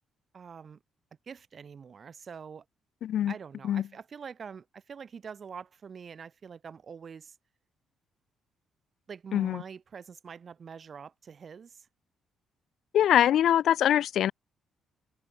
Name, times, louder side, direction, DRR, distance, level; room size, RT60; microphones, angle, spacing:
voice 1, 0.3-0.8 1.3-2.6 3.3-7.4 9.1-11.9, right 6 dB, 45° right, 4.4 m, -45 dB
voice 2, 3.0-3.3 3.6-3.8 9.3-9.6 12.9-14.3, left 11 dB, 70° left, 0.7 m, -23 dB
open air
cardioid pair, 90°, 0 cm